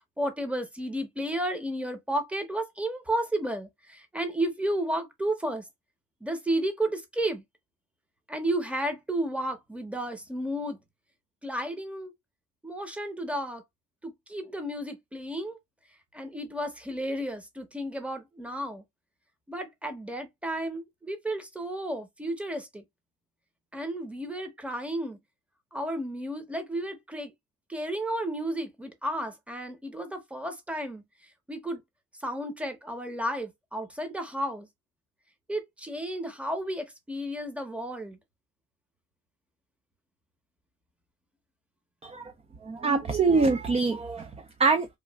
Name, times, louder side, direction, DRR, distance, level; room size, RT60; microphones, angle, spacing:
voice 1, 0.2-5.6 6.2-7.4 8.3-10.8 11.4-12.1 12.6-13.6 14.0-15.6 16.1-18.8 19.5-22.8 23.7-25.2 25.7-27.3 27.7-31.0 31.5-31.8 32.2-34.7 35.5-38.2, right 1 dB, 5° right, 0.8 m, -32 dB
voice 2, 42.6-44.3 44.6-44.9, right 4 dB, 20° right, 0.4 m, -24 dB
3.0 x 2.3 x 2.3 m
cardioid pair, 90°, 30 cm